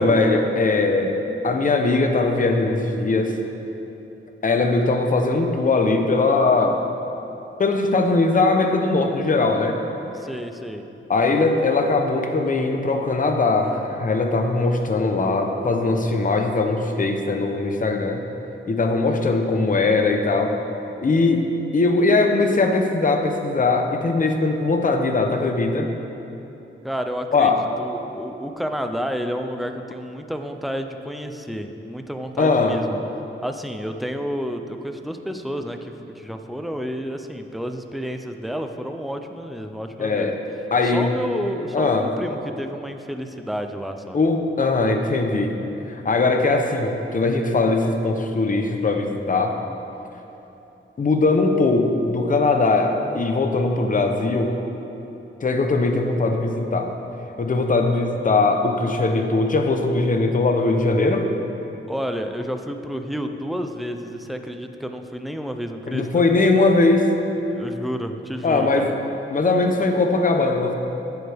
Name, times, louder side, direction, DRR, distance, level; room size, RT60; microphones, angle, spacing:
voice 1, 0.0-3.4 4.4-6.8 7.6-9.8 11.1-18.2 18.7-20.6 21.0-25.9 27.3-27.6 32.4-32.8 40.0-40.4 40.7-41.1 41.7-42.1 44.1-45.6 45.9-49.6 51.0-54.6 55.4-56.9 57.4-61.3 65.9-67.1 68.4-68.9 69.3-70.7, left 3 dB, 40° left, 4 dB, 0.8 m, -20 dB
voice 2, 10.1-10.8 26.8-27.5 27.8-33.0 33.4-40.3 40.8-44.2 61.9-66.1 67.5-68.9, equal, ahead, 5 dB, 0.5 m, -30 dB
14.5 x 7.9 x 3.5 m, 3.0 s
wide cardioid pair, 150°, 21 cm